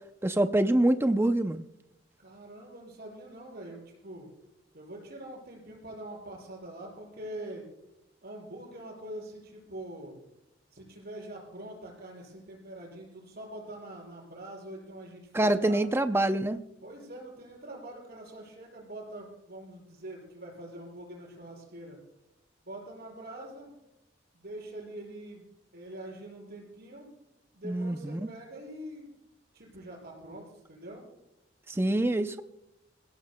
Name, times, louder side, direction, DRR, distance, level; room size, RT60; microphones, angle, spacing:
voice 1, 0.2-1.6 15.3-16.6 27.6-28.2 31.7-32.4, right 1 dB, 15° right, 9 dB, 0.5 m, -25 dB
voice 2, 2.2-4.3 4.7-7.6 8.2-10.2 10.7-15.8 16.8-22.0 22.6-23.7 24.3-25.4 25.7-27.1 27.5-29.1 29.5-31.0, right 1 dB, 55° right, -1 dB, 6.1 m, -44 dB
25.0 x 16.5 x 2.2 m, 0.87 s
head